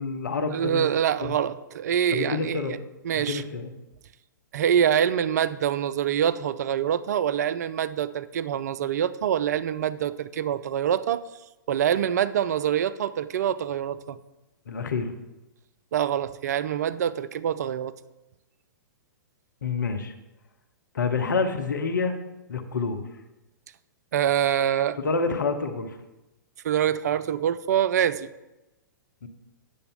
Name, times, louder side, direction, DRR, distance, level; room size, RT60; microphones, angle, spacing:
voice 1, 0.0-0.9 1.2-1.3 2.1-2.8 3.1-3.7 14.7-15.1 19.6-20.1 20.9-22.2 22.5-23.0 25.0-26.0 29.2-29.3, left 4 dB, 70° left, 7 dB, 0.9 m, -28 dB
voice 2, 0.5-2.8 3.0-3.4 4.5-11.2 11.7-14.2 15.9-17.9 24.1-25.0 26.6-28.3, right 9 dB, 55° right, 14 dB, 0.4 m, -25 dB
8.6 x 6.7 x 3.6 m, 0.99 s
figure-of-eight pair, 110°, 11 cm